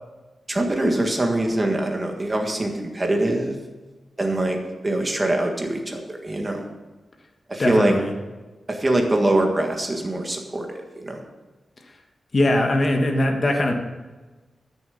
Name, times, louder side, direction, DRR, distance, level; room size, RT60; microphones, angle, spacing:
voice 1, 0.5-3.6 4.2-6.7 7.5-7.9 8.7-11.2, right 1 dB, 20° right, 2 dB, 1.6 m, -23 dB
voice 2, 7.6-8.1 12.3-13.7, left 1 dB, 35° left, 3 dB, 1.5 m, -21 dB
13.0 x 7.2 x 7.0 m, 1.2 s
wide cardioid pair, 165°, 0 cm